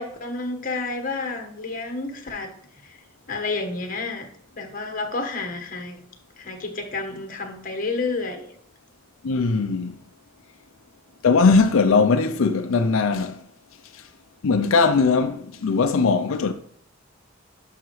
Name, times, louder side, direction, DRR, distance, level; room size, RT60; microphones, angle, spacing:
voice 1, 0.0-2.5 2.8-3.0 3.3-4.3 4.5-6.0 6.4-8.5, left 3 dB, 45° left, 1.3 m, -30 dB
voice 2, 9.2-10.0 11.2-13.5 13.9-14.1 14.4-16.5, left 4 dB, 90° left, 0.5 m, -20 dB
11.0 x 5.7 x 3.2 m
head